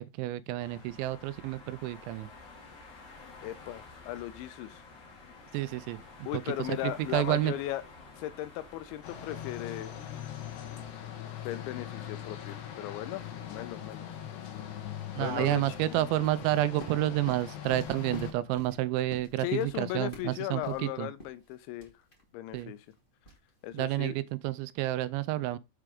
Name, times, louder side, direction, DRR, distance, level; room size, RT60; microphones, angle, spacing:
voice 1, 0.0-2.3 5.5-7.5 15.2-21.1 22.5-22.7 23.7-25.6, right 15 dB, 85° right, 2.8 m, -30 dB
sound 1, 0.6-10.9, left 3 dB, 50° left, 2.2 m, -51 dB
voice 2, 3.4-4.8 6.3-7.8 8.2-10.0 11.4-14.1 15.2-15.6 19.4-21.9 22.3-22.8 23.6-24.2, left 14 dB, 85° left, 2.9 m, -37 dB
sound 2, 9.0-18.3, left 10 dB, 70° left, 3.3 m, -41 dB
sound 3, 15.3-24.1, left 1 dB, 30° left, 1.0 m, -50 dB
7.7 x 4.8 x 5.0 m
omnidirectional pair, 5.4 m